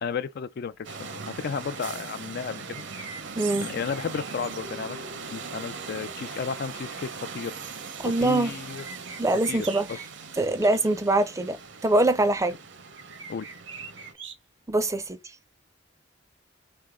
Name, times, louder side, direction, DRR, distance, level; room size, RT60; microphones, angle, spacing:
voice 1, 0.0-2.8 3.6-5.0 5.3-7.6 8.0-8.8 9.5-10.0 13.3-13.5, left 6 dB, 55° left, 0.4 m, -33 dB
sound 1, 0.8-14.1, right 5 dB, 65° right, 0.8 m, -40 dB
sound 2, 2.5-4.8 8.7-10.1 10.6-10.9 12.9-14.3, right 5 dB, 85° right, 1.3 m, -41 dB
voice 2, 3.4-3.7 8.0-8.5 9.2-9.9 10.4-11.6 11.8-12.6 14.7-15.2, right 2 dB, 15° right, 0.5 m, -23 dB
3.7 x 3.3 x 3.6 m
head